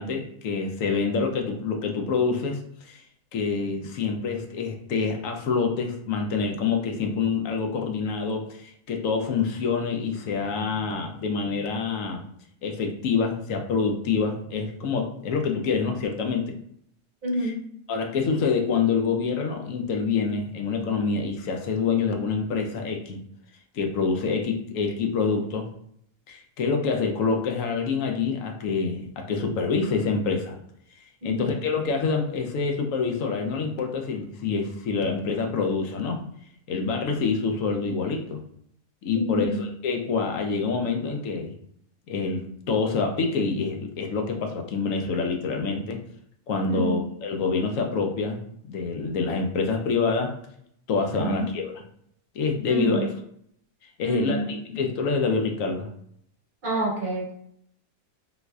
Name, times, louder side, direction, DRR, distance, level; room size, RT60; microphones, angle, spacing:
voice 1, 0.0-3.0 3.3-12.2 12.6-16.5 17.4-17.5 17.9-23.2 23.7-25.7 26.3-30.6 31.2-36.2 36.7-38.4 39.0-41.5 42.1-46.0 46.5-48.4 48.7-50.3 50.9-51.9 52.3-53.1 54.0-55.9, left 5 dB, 75° left, 3 dB, 0.9 m, -26 dB
voice 2, 17.2-17.6 31.2-31.5 39.1-39.6 46.7-47.0 51.1-51.4 52.7-53.1 54.0-54.5 56.6-57.3, right 2 dB, 40° right, -5 dB, 0.9 m, -28 dB
4.0 x 2.5 x 2.3 m, 0.69 s
omnidirectional pair, 1.5 m